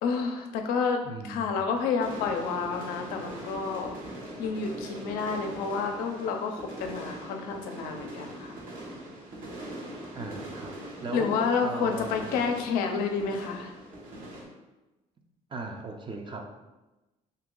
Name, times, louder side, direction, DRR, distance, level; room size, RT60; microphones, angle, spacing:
voice 1, 0.0-4.0 4.4-8.6 11.1-13.7, left 5 dB, 90° left, 4 dB, 0.5 m, -29 dB
voice 2, 1.0-1.7 10.1-12.3 15.5-16.5, right 3 dB, 35° right, 3 dB, 0.6 m, -38 dB
sound 1, 2.0-14.4, right 1 dB, 65° right, 1.1 m, -42 dB
2.9 x 2.7 x 3.8 m, 1.0 s
supercardioid pair, 75°, 15 cm